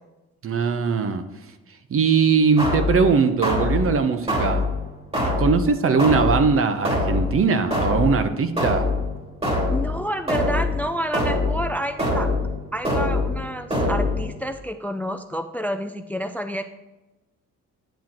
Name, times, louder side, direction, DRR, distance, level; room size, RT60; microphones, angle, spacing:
voice 1, 0.4-1.2 1.9-4.6 5.1-8.9, right 5 dB, 45° right, 9 dB, 0.8 m, -20 dB
sound 1, 2.6-14.5, left 2 dB, 20° right, 2.4 m, -25 dB
voice 2, 9.7-12.3 12.7-16.7, equal, 5° left, 9 dB, 0.4 m, -29 dB
9.1 x 7.4 x 3.0 m, 1.1 s
cardioid pair, 90°, 30 cm